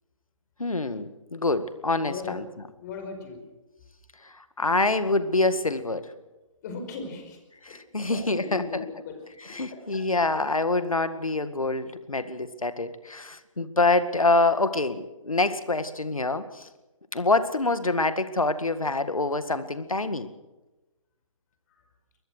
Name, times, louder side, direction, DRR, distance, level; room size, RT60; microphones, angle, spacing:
voice 1, 0.6-2.4 4.2-6.1 7.6-8.6 9.5-16.7 17.1-20.3, left 2 dB, 90° left, 12 dB, 2.0 m, -26 dB
voice 2, 1.9-2.4 2.8-3.4 6.6-7.4 7.7-7.8 8.1-9.2 9.7-10.0 10.4-10.5 21.7-21.8, left 4 dB, 30° left, 6 dB, 5.2 m, -38 dB
23.5 x 21.0 x 6.4 m, 1.1 s
figure-of-eight pair, 145°, 17 cm